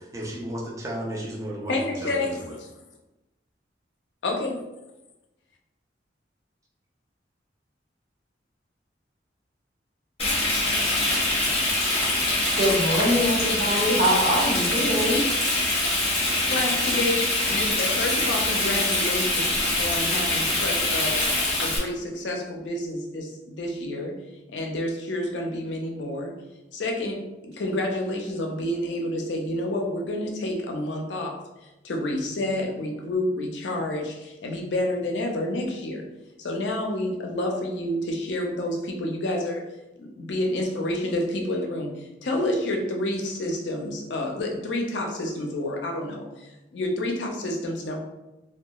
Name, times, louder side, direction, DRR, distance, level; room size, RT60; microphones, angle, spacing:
voice 1, 0.1-2.5, right 1 dB, 20° right, -3 dB, 0.4 m, -34 dB
voice 2, 1.7-2.7 4.2-4.6 16.4-21.2 21.6-24.1 24.5-26.3 26.7-31.4 31.8-36.1 36.4-39.6 40.0-48.0, left 1 dB, 80° left, 1 dB, 0.5 m, -29 dB
Frying (food), 10.2-21.8, left 2 dB, 35° left, 0.9 m, -24 dB
voice 3, 12.5-15.2, equal, 65° right, -5 dB, 1.1 m, -23 dB
2.8 x 2.2 x 2.2 m, 0.99 s
head